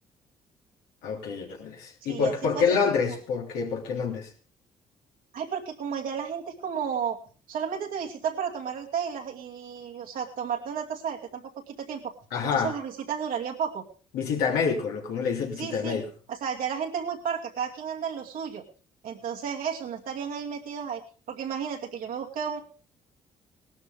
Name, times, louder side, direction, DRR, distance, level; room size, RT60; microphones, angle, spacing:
voice 1, 1.0-4.3 12.3-12.7 14.1-16.1, left 6 dB, 80° left, 0 dB, 3.1 m, -27 dB
voice 2, 2.0-2.7 3.0-3.1 5.3-7.2 7.5-12.1 12.5-13.8 15.6-16.0 16.3-18.6 19.0-21.0 21.3-22.6, right 7 dB, 70° right, 1 dB, 2.5 m, -33 dB
18.0 x 12.5 x 3.5 m, 0.38 s
supercardioid pair, 55°, 15 cm